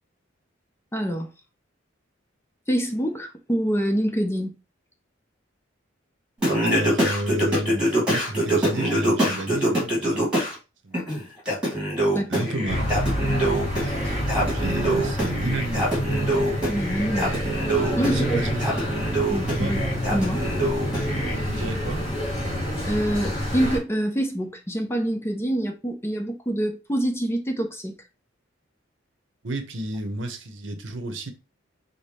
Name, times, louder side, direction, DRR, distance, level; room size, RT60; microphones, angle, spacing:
voice 1, 0.9-1.3 2.7-4.6 12.1-12.5 16.7-17.3 18.0-18.4 19.3-19.8 20.1-20.5 22.8-27.9, right 1 dB, 15° left, 0.6 m, -26 dB
Singing, 6.4-10.5 10.9-21.3, right 1 dB, 5° right, 2.0 m, -25 dB
voice 2, 6.6-10.3 10.8-11.1 12.3-12.9 14.4-15.9 18.0-18.7 19.6-19.8 21.3-22.2 29.4-31.3, right 1 dB, 70° right, 0.8 m, -31 dB
sound 1, 12.7-23.8, equal, 35° left, 2.3 m, -27 dB
5.0 x 2.1 x 4.2 m
head